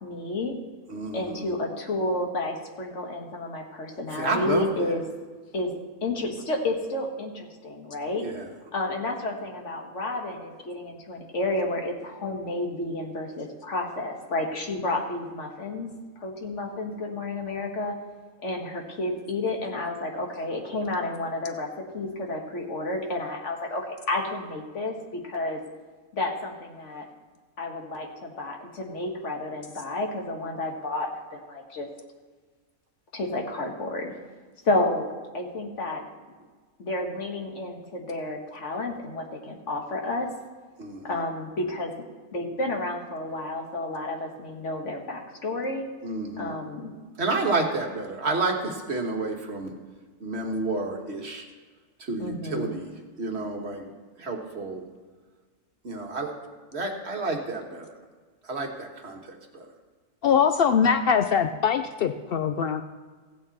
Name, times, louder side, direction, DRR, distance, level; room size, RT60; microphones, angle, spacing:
voice 1, 0.0-0.5 1.1-5.0 5.5-5.7 6.0-8.3 8.7-15.9 16.2-17.9 18.4-21.7 21.9-25.6 26.1-27.1 27.6-31.9 33.1-34.1 34.6-35.1 35.3-36.0 36.8-40.3 41.0-41.9 42.3-45.8 46.4-46.9 52.2-52.7, left 2 dB, 55° left, 2 dB, 1.6 m, -31 dB
voice 2, 0.9-1.5 4.2-4.7 8.2-8.4 40.8-41.0 46.0-46.5 47.2-49.7 50.2-51.4 52.1-52.9 53.2-53.8 54.2-54.8 55.8-56.3 56.7-57.8 58.5-59.2 59.5-59.6, right 3 dB, 50° right, 2 dB, 1.5 m, -30 dB
voice 3, 60.2-62.8, left 7 dB, 85° left, 8 dB, 0.5 m, -22 dB
15.5 x 8.8 x 4.1 m, 1.4 s
omnidirectional pair, 1.5 m